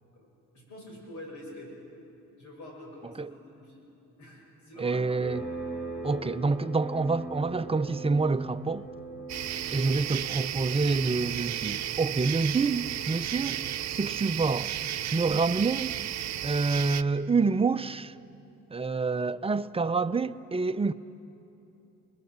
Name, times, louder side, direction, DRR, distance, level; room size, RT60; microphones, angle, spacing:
voice 1, 0.5-1.7 2.4-3.8 4.2-5.1 9.7-9.9, left 1 dB, 85° left, 7.9 m, -46 dB
voice 2, 4.8-5.5 6.0-8.9 9.7-13.6 13.9-14.7 15.1-15.9 16.4-18.2 18.7-20.9, right 4 dB, 20° right, 0.6 m, -27 dB
sound 1, 5.2-15.5, right 2 dB, 40° left, 6.1 m, -42 dB
sound 2, 9.3-17.0, right 11 dB, 60° right, 0.8 m, -33 dB
29.0 x 21.0 x 8.1 m
cardioid pair, 90°, 30 cm